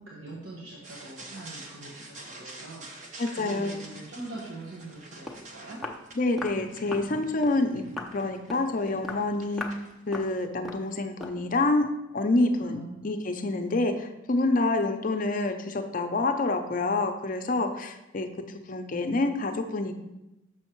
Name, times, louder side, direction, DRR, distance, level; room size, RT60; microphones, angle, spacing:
voice 1, 0.0-5.8 12.6-13.1, right 2 dB, 85° right, -4 dB, 1.3 m, -43 dB
sound 1, 0.8-10.5, right 2 dB, 40° right, 0.9 m, -47 dB
voice 2, 3.2-3.8 6.2-7.8 8.1-9.6 10.1-18.3 18.7-19.9, left 2 dB, 45° left, 6 dB, 0.6 m, -27 dB
Walk footsteps, 4.9-5.0 5.3-5.4 5.8-6.0 6.4-6.6 6.9-7.1 7.4-7.6 8.0-8.2 8.5-8.7 9.0-9.3 9.6-9.8 10.1-10.3 10.6-10.9 11.2-11.4, left 2 dB, ahead, 0.6 m, -38 dB
6.4 x 6.3 x 4.5 m, 0.96 s
head